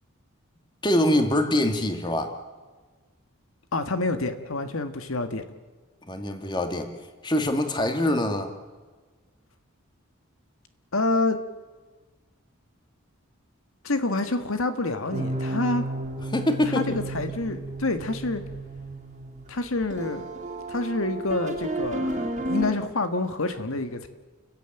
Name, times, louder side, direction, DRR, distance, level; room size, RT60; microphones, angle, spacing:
voice 1, 0.8-2.3 6.1-6.9 7.2-8.5 16.3-16.9, left 1 dB, 20° left, 5 dB, 2.1 m, -24 dB
voice 2, 3.7-5.4 10.9-11.4 13.8-15.8 16.7-18.4 19.5-20.3 20.7-24.1, left 2 dB, 75° left, 8 dB, 1.7 m, -27 dB
sound 1, 15.1-22.7, right 1 dB, 35° right, 2.9 m, -32 dB
30.0 x 15.0 x 9.1 m, 1.4 s
head